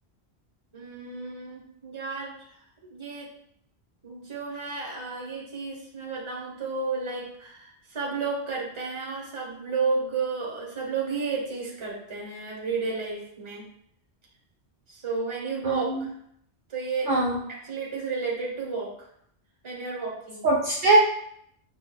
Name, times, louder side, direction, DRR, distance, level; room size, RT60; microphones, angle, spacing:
voice 1, 0.7-2.4 2.8-3.3 4.0-13.7 14.9-16.1 16.7-17.1 17.5-18.9 19.6-20.5, right 4 dB, 30° right, -3 dB, 0.8 m, -32 dB
voice 2, 15.6-16.1 17.1-17.4 20.4-21.0, right 2 dB, 60° right, -2 dB, 0.7 m, -22 dB
5.6 x 2.3 x 2.2 m, 0.70 s
omnidirectional pair, 1.1 m